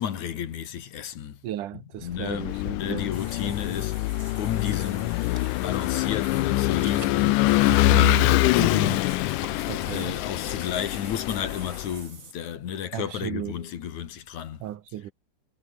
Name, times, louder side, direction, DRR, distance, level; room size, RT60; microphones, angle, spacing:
voice 1, 0.0-1.4 2.0-2.5 2.7-3.9 4.4-7.5 7.8-9.1 9.9-14.6, left 9 dB, 65° left, 3.2 m, -33 dB
voice 2, 1.4-3.1 3.4-3.9 7.7-9.0 9.7-10.2 12.9-13.5 14.6-15.1, right 12 dB, 80° right, 2.8 m, -34 dB
Vehicle / Engine, 2.1-11.9, left 20 dB, 80° left, 2.1 m, -24 dB
Water / Bathtub (filling or washing), 3.1-12.3, right 5 dB, 30° right, 2.0 m, -47 dB
omnidirectional pair, 3.6 m